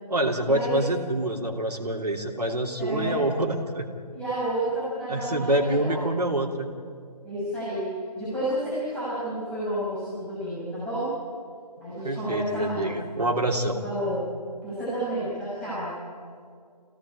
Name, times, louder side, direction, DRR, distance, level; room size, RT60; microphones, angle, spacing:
voice 1, 0.1-3.9 5.1-6.7 12.0-13.8, right 1 dB, 70° right, 1 dB, 3.1 m, -26 dB
voice 2, 2.8-3.2 4.1-6.2 7.2-7.8 8.2-11.1 11.8-12.9 13.8-14.2 14.6-15.9, right 1 dB, 5° left, -12 dB, 6.5 m, -30 dB
27.5 x 17.0 x 8.8 m, 2.2 s
figure-of-eight pair, 150°, 21 cm